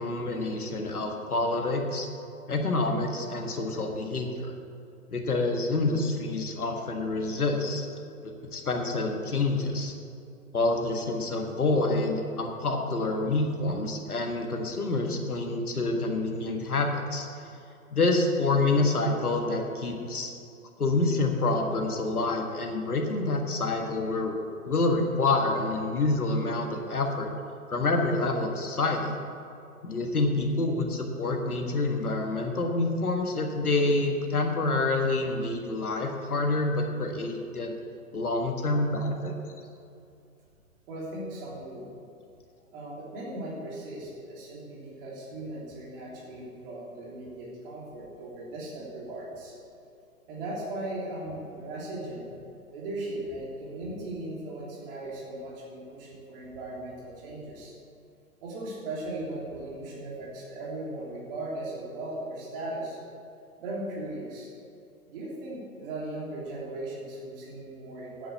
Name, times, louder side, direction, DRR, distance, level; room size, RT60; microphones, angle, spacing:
voice 1, 0.0-2.1 2.5-4.5 5.1-7.9 8.2-9.9 10.5-17.3 17.9-20.3 20.8-24.3 24.6-27.3 27.7-29.1 29.8-37.7 38.1-39.3, left 2 dB, 80° left, 3 dB, 1.7 m, -27 dB
voice 2, 40.9-41.9 42.7-49.5 50.3-52.3 52.7-57.7 58.4-63.0 63.6-64.5 65.1-68.3, right 1 dB, 40° right, -5 dB, 3.4 m, -38 dB
9.4 x 8.3 x 8.1 m, 2.6 s
figure-of-eight pair, 125°, 44 cm